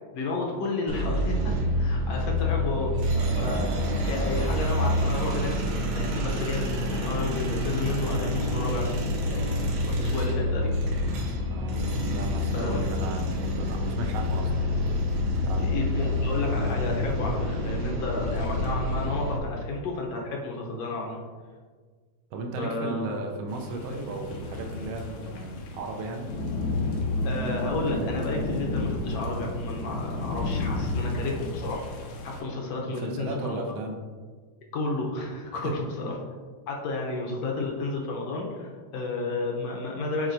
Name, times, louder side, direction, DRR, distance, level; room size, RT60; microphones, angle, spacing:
voice 1, 0.1-10.8 12.5-12.8 15.6-21.2 22.6-23.1 27.2-31.8 32.2-33.7 34.7-36.1 36.7-40.3, left 3 dB, 70° left, -1 dB, 1.7 m, -32 dB
sound 1, 0.9-19.4, left 1 dB, 90° right, 2.3 m, -27 dB
voice 2, 11.4-11.9 12.1-14.5 15.4-15.7 22.3-26.3 32.8-34.0 35.5-35.7, right 2 dB, 75° right, 2 dB, 1.6 m, -35 dB
sound 2, 23.5-32.4, left 2 dB, 85° left, 2.3 m, -31 dB
9.2 x 4.1 x 2.7 m, 1.5 s
omnidirectional pair, 3.4 m